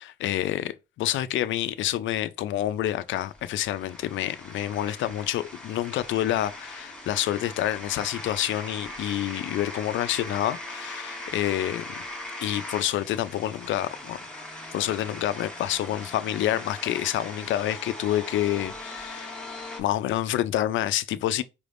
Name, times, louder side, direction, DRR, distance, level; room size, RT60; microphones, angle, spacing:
voice 1, 0.0-12.0 12.4-14.2 14.7-19.4 19.8-21.4, left 13 dB, 75° left, 0.4 m, -28 dB
sound 1, 2.8-19.8, left 1 dB, 5° left, 1.2 m, -40 dB
4.9 x 3.4 x 2.5 m
cardioid pair, 90°, 20 cm